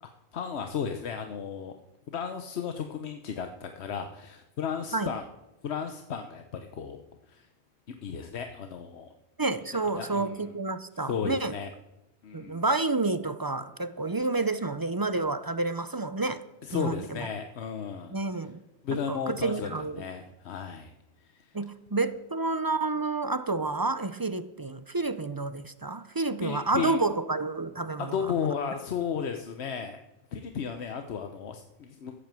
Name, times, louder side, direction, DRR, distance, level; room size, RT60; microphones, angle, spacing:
voice 1, 0.0-1.7 2.1-5.2 5.6-7.0 7.3-7.5 8.0-9.1 10.0-10.5 11.0-11.7 12.2-12.6 16.6-18.2 18.8-20.9 21.3-21.6 26.4-27.0 28.0-30.0 30.3-32.2, left 7 dB, 85° left, 6 dB, 1.1 m, -34 dB
voice 2, 9.4-11.5 12.3-16.4 16.7-17.3 18.1-18.6 19.1-20.0 21.5-28.2, right 3 dB, 30° right, 12 dB, 0.4 m, -29 dB
14.0 x 8.5 x 7.5 m, 0.97 s
omnidirectional pair, 1.1 m